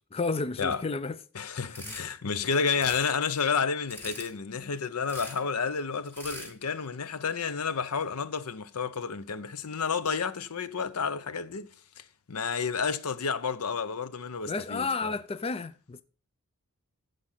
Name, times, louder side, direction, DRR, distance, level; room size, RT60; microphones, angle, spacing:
voice 1, 0.0-1.2 1.6-1.9 14.5-16.0, left 4 dB, 25° left, 0.4 m, -32 dB
voice 2, 1.3-11.7 12.0-15.2, left 5 dB, 75° left, 0.7 m, -31 dB
sound 1, 1.7-2.0 2.7-3.1 3.9-4.3 5.1-5.4 6.1-6.5, right 1 dB, 10° left, 2.6 m, -42 dB
15.0 x 5.2 x 5.6 m
head